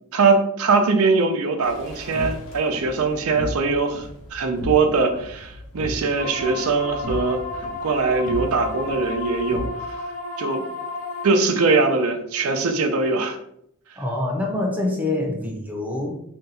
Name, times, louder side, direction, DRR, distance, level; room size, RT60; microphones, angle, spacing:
voice 1, 0.1-7.4 7.8-9.6 10.4-10.6 11.2-13.4, right 4 dB, 75° right, 5 dB, 0.5 m, -21 dB
sound 1, 1.6-9.7, left 1 dB, 65° left, 1.2 m, -36 dB
sound 2, 6.2-11.3, left 2 dB, 40° left, 0.6 m, -32 dB
voice 2, 14.0-16.2, left 2 dB, 5° right, 0 dB, 0.6 m, -25 dB
2.7 x 2.3 x 4.1 m, 0.72 s
head